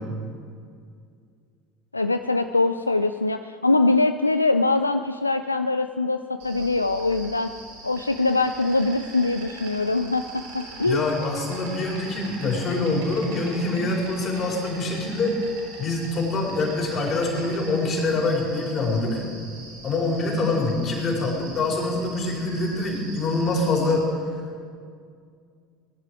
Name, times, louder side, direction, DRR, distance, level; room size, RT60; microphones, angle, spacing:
voice 1, 1.9-7.5 7.8-11.0, left 3 dB, 90° left, 9 dB, 0.3 m, -23 dB
Insect, 6.4-24.0, right 2 dB, 65° right, 4.7 m, -42 dB
voice 2, 10.8-15.4 15.8-19.2 19.8-24.0, left 2 dB, 40° left, -2 dB, 4.5 m, -25 dB
19.5 x 10.5 x 4.8 m, 2.2 s
figure-of-eight pair, 70°, 0 cm